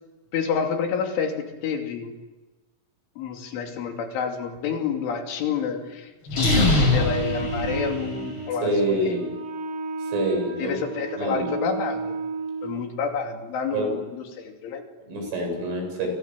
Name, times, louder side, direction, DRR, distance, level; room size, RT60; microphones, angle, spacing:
voice 1, 0.3-2.2 3.2-9.1 10.6-12.2 12.6-14.8, left 6 dB, 75° left, 4 dB, 5.3 m, -29 dB
sound 1, 6.3-8.4, left 2 dB, 25° left, 6.1 m, -22 dB
Wind instrument woodwind instrument, 7.0-12.8, right 4 dB, 60° right, 5.4 m, -33 dB
voice 2, 8.6-9.3 10.0-10.8 11.2-11.4 13.7-13.9 15.1-16.1, right 1 dB, 80° right, 3 dB, 10.5 m, -26 dB
29.5 x 25.5 x 7.7 m, 1.2 s
omnidirectional pair, 5.6 m